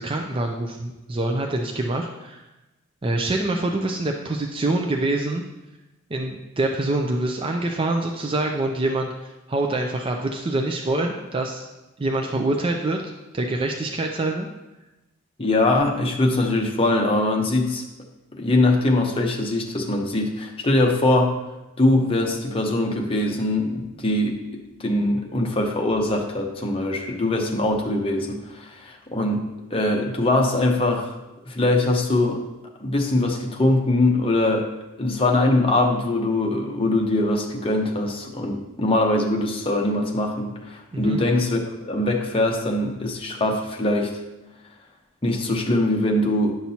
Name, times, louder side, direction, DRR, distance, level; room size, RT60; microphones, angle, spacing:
voice 1, 0.0-2.4 3.0-5.4 6.1-11.7 12.0-13.0 13.3-14.5 40.9-41.2, right 2 dB, 25° right, 2 dB, 0.4 m, -25 dB
voice 2, 15.4-17.8 18.3-21.3 21.8-24.3 24.8-29.4 29.7-31.1 31.5-32.4 32.8-34.7 35.0-44.2 45.2-46.5, left 2 dB, 25° left, 1 dB, 0.8 m, -22 dB
10.5 x 5.9 x 2.8 m, 1.0 s
head